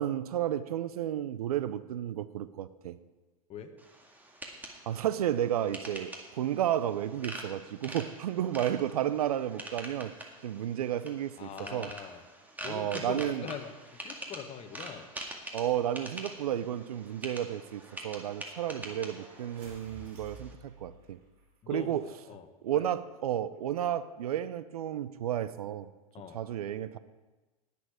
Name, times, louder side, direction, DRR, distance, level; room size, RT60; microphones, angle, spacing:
voice 1, 0.0-3.0 4.9-10.1 10.4-11.9 12.6-13.5 15.5-21.2 21.7-22.0 22.6-25.9 26.3-27.0, right 11 dB, 80° right, 15 dB, 0.6 m, -32 dB
sound 1, 3.8-20.5, right 1 dB, 10° right, 2.0 m, -45 dB
voice 2, 11.4-12.2 12.6-15.1 21.6-22.9 26.1-26.4, left 7 dB, 35° left, 6 dB, 1.5 m, -43 dB
sound 2, 14.8-21.5, right 2 dB, 50° right, 4.1 m, -56 dB
18.5 x 6.9 x 5.0 m, 1.1 s
hypercardioid pair, 95°, 19 cm